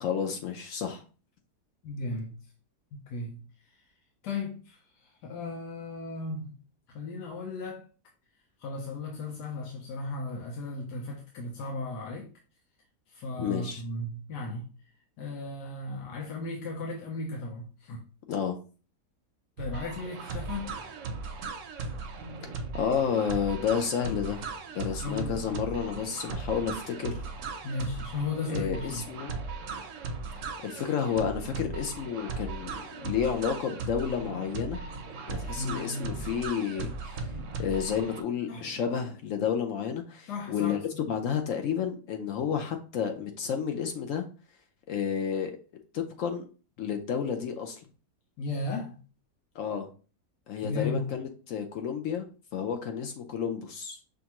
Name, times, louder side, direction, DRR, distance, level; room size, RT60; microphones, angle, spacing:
voice 1, 0.0-1.0 13.4-13.8 18.3-18.6 22.7-24.4 24.7-27.2 28.5-29.3 30.6-34.8 35.3-36.9 37.6-40.8 41.1-44.2 44.9-45.6 45.9-46.4 46.8-47.8 49.6-49.9 50.5-52.3 52.5-54.0, left 7 dB, 65° left, 0.8 m, -31 dB
voice 2, 1.8-2.4 2.9-3.5 4.2-6.6 6.9-7.9 8.6-12.3 13.1-14.7 15.2-18.1 19.6-20.8 25.0-25.4 27.6-29.1 35.5-36.3 37.3-37.6 38.5-38.6 40.3-41.1 48.4-49.0 50.6-51.2, left 3 dB, 85° left, 1.3 m, -36 dB
sound 1, 19.6-38.2, right 4 dB, 65° right, 0.8 m, -37 dB
5.7 x 2.5 x 2.9 m
omnidirectional pair, 1.8 m